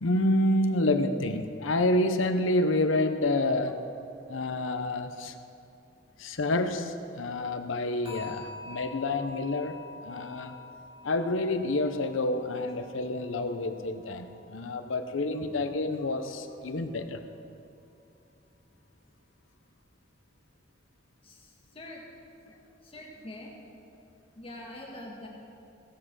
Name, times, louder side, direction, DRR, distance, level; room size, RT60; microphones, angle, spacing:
voice 1, 0.0-3.8 4.3-5.4 6.2-10.6 11.0-17.2, left 2 dB, 90° left, 9 dB, 0.8 m, -28 dB
sound 1, 8.0-15.1 15.4-15.8 16.3-16.4, left 4 dB, 25° right, 3.4 m, -47 dB
voice 2, 21.2-22.0 22.4-23.5 24.4-25.3, left 1 dB, 30° left, -2 dB, 1.7 m, -45 dB
17.0 x 7.8 x 6.2 m, 2.7 s
head